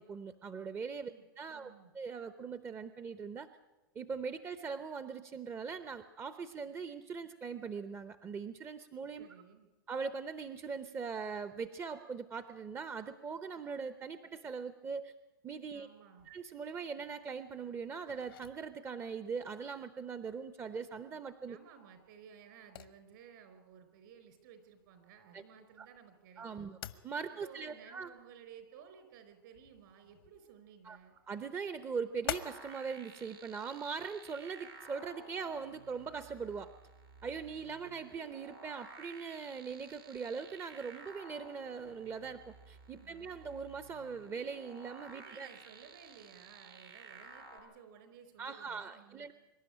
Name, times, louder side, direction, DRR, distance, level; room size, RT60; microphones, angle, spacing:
voice 1, 0.0-3.5 3.9-9.3 9.9-15.1 15.4-15.9 16.3-21.6 25.3-25.4 25.8-25.9 26.4-26.8 27.0-28.1 30.8-31.0 31.3-36.7 37.2-45.5 48.4-49.3, right 5 dB, 20° right, 12 dB, 0.8 m, -41 dB
voice 2, 1.1-1.9 9.2-9.7 15.7-16.3 21.5-26.8 27.3-31.2 43.0-43.4 45.1-49.3, right 7 dB, 60° right, 9 dB, 4.6 m, -57 dB
sound 1, 16.2-32.8, left 11 dB, 75° left, 1.2 m, -49 dB
sound 2, 32.2-47.6, right 3 dB, 85° right, 5.4 m, -54 dB
24.5 x 11.5 x 9.9 m, 1.1 s
hypercardioid pair, 120°, 12 cm